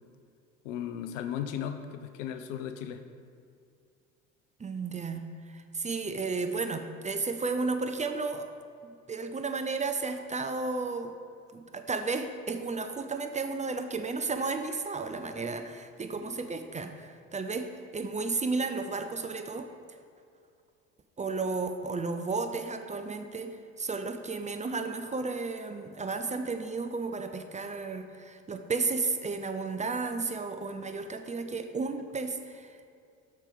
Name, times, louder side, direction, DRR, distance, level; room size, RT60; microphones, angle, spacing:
voice 1, 0.6-3.0, left 9 dB, 70° left, 9 dB, 0.8 m, -36 dB
voice 2, 4.6-8.5 9.1-11.1 11.5-19.7 21.2-32.9, right 4 dB, 20° right, 7 dB, 0.6 m, -33 dB
7.6 x 6.4 x 5.1 m, 2.4 s
hypercardioid pair, 60°, 40 cm